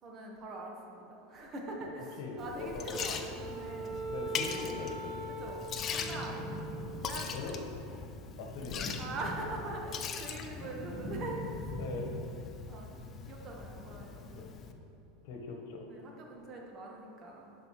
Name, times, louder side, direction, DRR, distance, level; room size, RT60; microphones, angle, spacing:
voice 1, 0.0-4.0 4.4-4.7 5.4-5.6 5.9-6.4 7.0-7.4 9.0-11.8 12.7-14.6 15.5-15.6 15.9-17.6, right 2 dB, 40° right, 0 dB, 1.4 m, -43 dB
voice 2, 2.2-3.1 4.1-5.2 6.4-6.5 7.3-7.6 8.4-8.9 11.8-12.1 13.9-14.0 14.3-14.5 15.2-15.9, left 4 dB, 65° left, 1 dB, 1.2 m, -41 dB
Liquid, 2.4-14.7, left 6 dB, 35° left, 0.5 m, -41 dB
Wind instrument woodwind instrument, 2.8-7.2, right 3 dB, 60° right, 1.6 m, -42 dB
sound 1, 5.9-7.5 8.4-9.9 10.3-12.7, left 1 dB, 10° right, 1.3 m, -43 dB
11.0 x 5.1 x 3.1 m, 2.9 s
supercardioid pair, 110°, 0 cm